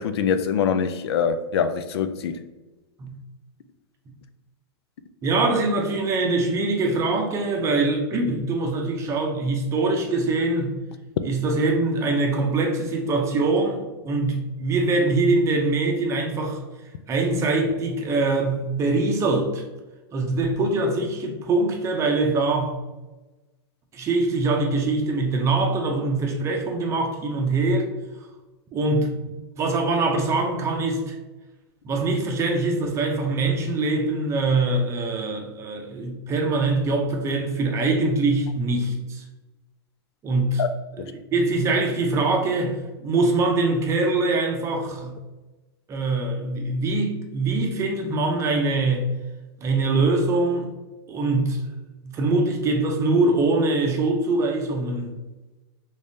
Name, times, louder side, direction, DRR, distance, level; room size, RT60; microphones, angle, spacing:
voice 1, 0.0-2.4 40.6-40.7, left 7 dB, 80° left, 0.4 m, -24 dB
voice 2, 5.2-10.7 11.2-16.6 17.1-19.6 20.1-22.7 23.9-27.9 28.7-29.1 29.6-31.2 31.8-39.2 40.2-40.6 41.3-45.2 45.9-49.1 49.6-50.7 51.1-51.7 52.0-55.1, right 3 dB, 20° right, 0.6 m, -23 dB
3.5 x 3.3 x 2.7 m
supercardioid pair, 140°, 13 cm